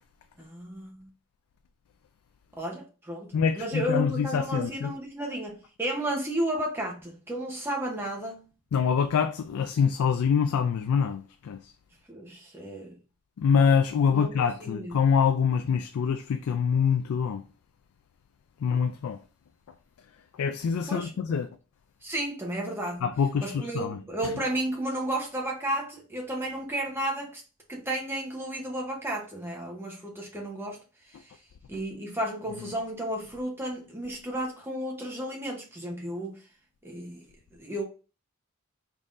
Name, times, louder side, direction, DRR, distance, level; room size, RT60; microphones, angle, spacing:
voice 1, 0.4-1.1 2.5-8.5 12.1-13.0 14.1-14.3 14.6-15.0 20.9-21.4 22.0-23.0 23.4-27.4 27.7-30.8 31.7-36.4 36.8-37.3 37.5-37.8, right 1 dB, 10° right, 0.9 m, -33 dB
voice 2, 3.3-4.9 8.7-11.7 13.4-17.4 18.6-19.2 20.4-21.5 23.0-24.3, left 6 dB, 85° left, 0.3 m, -25 dB
4.0 x 3.7 x 2.5 m
head